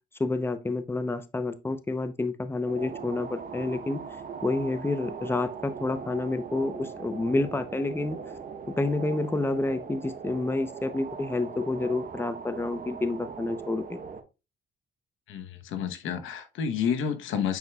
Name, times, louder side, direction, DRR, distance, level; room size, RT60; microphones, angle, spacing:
voice 1, 0.2-4.0 4.4-8.2 8.6-14.0, left 2 dB, 10° left, 0.7 m, -29 dB
sound 1, 2.7-14.2, right 6 dB, 45° right, 1.0 m, -40 dB
voice 2, 15.3-17.6, left 7 dB, 85° left, 1.0 m, -30 dB
9.3 x 4.6 x 2.3 m
cardioid pair, 90°, 20 cm